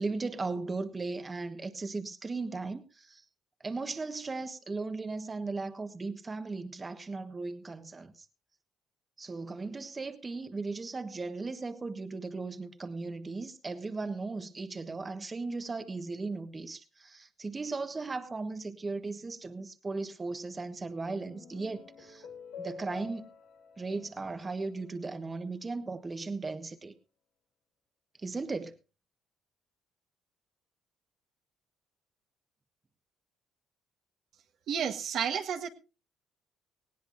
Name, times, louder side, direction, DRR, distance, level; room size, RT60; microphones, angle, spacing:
voice 1, 0.0-3.2 3.6-8.2 9.2-22.3 22.6-23.3 23.8-26.9 28.2-28.7, right 3 dB, 30° right, 1.4 m, -37 dB
sound 1, 20.8-25.4, left 5 dB, 85° left, 2.1 m, -49 dB
voice 2, 34.7-35.7, right 7 dB, 65° right, 1.6 m, -31 dB
19.5 x 16.5 x 2.6 m
supercardioid pair, 75°, 0 cm